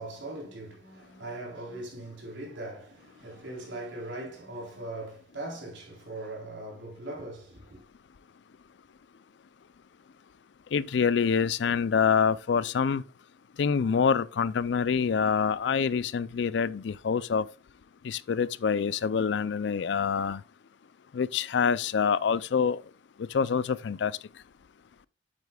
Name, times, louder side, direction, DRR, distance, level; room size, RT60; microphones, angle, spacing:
voice 1, 0.0-7.9, right 2 dB, 85° right, 3.6 m, -40 dB
voice 2, 10.7-13.0 13.6-17.5 18.0-20.4 21.1-22.8 23.3-24.1, left 6 dB, 70° left, 0.4 m, -26 dB
9.0 x 8.2 x 2.3 m
head